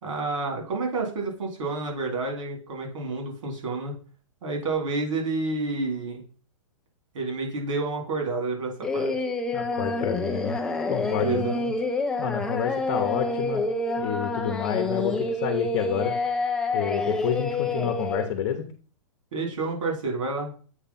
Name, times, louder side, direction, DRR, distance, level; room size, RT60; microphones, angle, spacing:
voice 1, 0.0-4.0 4.4-6.2 7.1-9.3 11.2-11.7 19.3-20.5, right 3 dB, 70° right, 1 dB, 3.7 m, -29 dB
Singing, 8.8-18.2, left 2 dB, 5° left, 0.3 m, -28 dB
voice 2, 9.5-10.6 10.9-11.5 12.2-13.6 14.0-16.2 16.7-18.6, left 9 dB, 40° left, 5 dB, 1.1 m, -29 dB
8.0 x 3.3 x 5.8 m, 0.40 s
hypercardioid pair, 165°, 17 cm